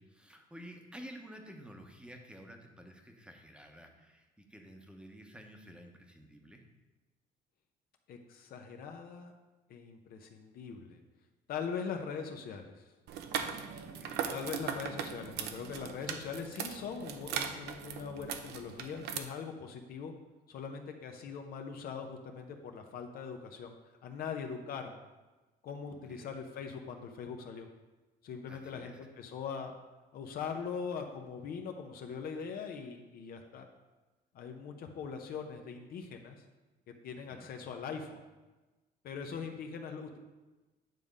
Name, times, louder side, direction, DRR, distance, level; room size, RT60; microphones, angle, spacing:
voice 1, 0.0-6.7 13.8-14.4 25.9-26.3 28.5-29.0 37.3-37.5 39.3-39.5, equal, 5° right, 3 dB, 1.0 m, -52 dB
voice 2, 8.1-9.3 9.7-11.0 11.5-12.9 14.3-20.1 20.5-25.0 25.6-27.7 28.2-29.7 30.1-33.7 34.3-36.5 36.9-38.2 39.0-40.2, left 6 dB, 60° left, 4 dB, 0.8 m, -41 dB
sound 1, 13.1-19.2, right 8 dB, 80° right, 0.6 m, -39 dB
9.1 x 3.6 x 5.3 m, 1.2 s
cardioid pair, 110°, 17 cm